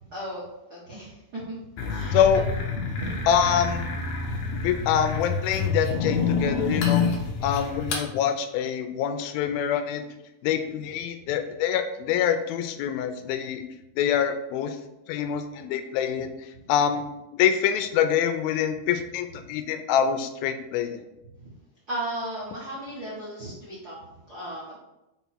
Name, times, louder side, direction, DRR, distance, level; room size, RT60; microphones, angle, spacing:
voice 1, 0.0-0.4 0.7-1.6 1.9-2.4 2.9-3.2 21.4-21.5 21.9-24.0 24.3-24.8, right 1 dB, 70° right, -7 dB, 0.9 m, -35 dB
sound 1, 1.8-8.1, left 5 dB, 70° left, 2.0 m, -27 dB
voice 2, 2.1-2.5 3.3-3.9 4.5-7.1 7.4-10.1 10.4-13.6 14.0-14.8 15.1-16.3 16.7-17.1 17.3-21.0, left 8 dB, 85° left, 8 dB, 2.4 m, -25 dB
5.7 x 4.1 x 4.3 m, 0.93 s
omnidirectional pair, 4.2 m